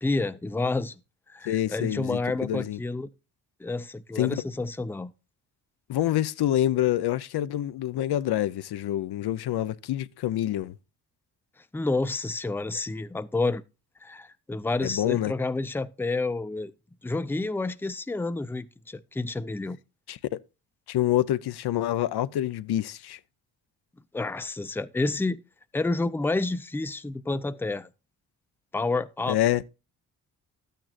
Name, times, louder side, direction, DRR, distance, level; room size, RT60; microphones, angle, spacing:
voice 1, 0.0-1.0 1.3-3.1 3.6-5.1 11.7-13.6 14.0-16.7 17.0-19.8 24.1-25.4 25.7-27.9 28.7-29.4, left 3 dB, 5° left, 0.6 m, -29 dB
voice 2, 1.5-2.8 4.2-4.4 5.9-10.7 14.8-15.3 20.1-20.4 20.9-23.2 29.3-29.6, left 13 dB, 70° left, 0.6 m, -27 dB
12.0 x 9.1 x 2.4 m
cardioid pair, 65°, 41 cm